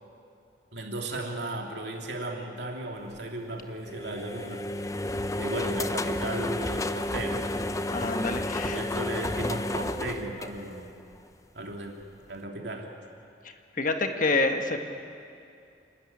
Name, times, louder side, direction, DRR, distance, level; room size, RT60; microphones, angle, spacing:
voice 1, 0.7-4.7 5.3-7.5 8.6-10.8 11.5-11.9 12.3-12.9, right 1 dB, 65° right, 1 dB, 3.0 m, -35 dB
sound 1, 3.8-11.1, left 1 dB, 20° left, 0.7 m, -31 dB
voice 2, 7.9-8.8 13.8-14.8, left 3 dB, 45° left, 6 dB, 1.5 m, -27 dB
29.0 x 13.0 x 9.9 m, 2.5 s
head